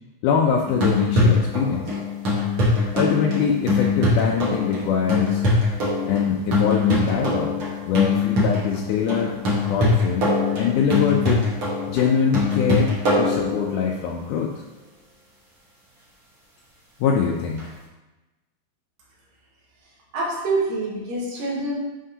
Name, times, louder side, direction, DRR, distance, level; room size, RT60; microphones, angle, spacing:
voice 1, 0.2-2.0 2.9-5.4 6.0-9.4 9.7-11.5 11.9-12.9 13.2-14.5 17.0-17.7, left 6 dB, 80° left, -1 dB, 1.9 m, -23 dB
sound 1, 0.7-14.0 17.6-17.7, left 2 dB, 55° right, 1.6 m, -22 dB
voice 2, 20.1-21.8, right 2 dB, 75° right, -5 dB, 3.2 m, -26 dB
11.0 x 3.7 x 2.8 m, 1.1 s
omnidirectional pair, 4.1 m